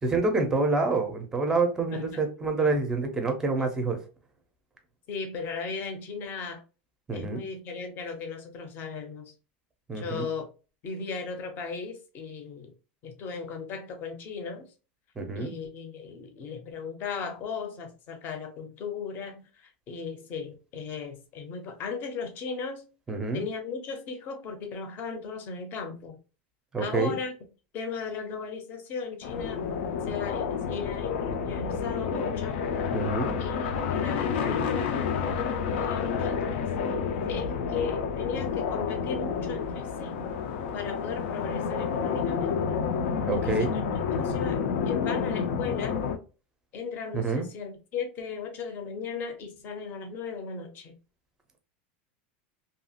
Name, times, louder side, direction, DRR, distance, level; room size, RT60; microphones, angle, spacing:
voice 1, 0.0-4.0 7.1-7.4 9.9-10.3 15.2-15.5 23.1-23.4 26.7-27.2 32.9-33.3 43.3-43.7 47.1-47.4, right 3 dB, 10° right, 0.5 m, -27 dB
voice 2, 1.9-2.2 5.1-6.6 7.1-9.3 10.0-10.5 10.8-12.7 13.0-14.7 15.3-22.8 23.3-26.2 26.8-27.4 27.7-29.7 30.1-32.7 33.4-36.7 37.3-40.2 40.7-42.8 43.3-43.8 44.1-46.0 46.7-51.0, left 5 dB, 30° left, 0.6 m, -36 dB
sound 1, 29.2-46.2, left 6 dB, 75° left, 0.5 m, -29 dB
2.7 x 2.4 x 2.8 m
supercardioid pair, 165°, 6 cm